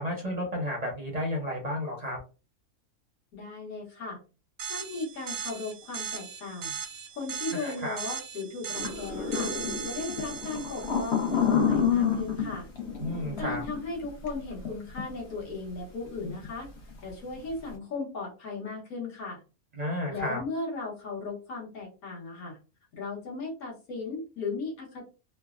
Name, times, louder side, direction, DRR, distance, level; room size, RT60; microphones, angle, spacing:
voice 1, 0.0-2.2 7.5-8.0 13.0-13.6 19.7-20.4, equal, 40° right, -1 dB, 0.6 m, -32 dB
voice 2, 3.3-4.2 4.7-6.7 7.1-9.5 9.8-12.7 13.4-16.7 17.0-19.4 20.1-22.6 22.9-25.1, left 3 dB, 75° left, -4 dB, 1.5 m, -36 dB
sound 1, 4.6-11.8, right 7 dB, 85° right, 1.1 m, -39 dB
sound 2, 8.7-14.7 15.0-15.1 16.2-16.5 16.8-17.0, left 7 dB, 55° left, 1.0 m, -28 dB
3.2 x 2.1 x 2.3 m, 0.33 s
omnidirectional pair, 1.5 m